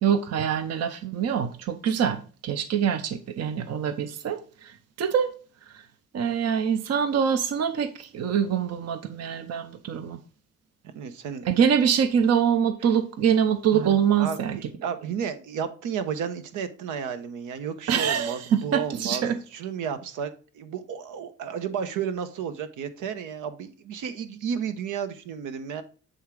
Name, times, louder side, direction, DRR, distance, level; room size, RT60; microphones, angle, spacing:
voice 1, 0.0-5.3 5.7-5.8 6.1-10.2 11.4-14.6 17.9-19.4, right 8 dB, 55° right, 0.7 m, -24 dB
voice 2, 10.9-11.5 13.7-19.2 19.5-25.8, right 7 dB, 85° right, 1.0 m, -33 dB
7.8 x 3.6 x 4.8 m
cardioid pair, 90°, 30 cm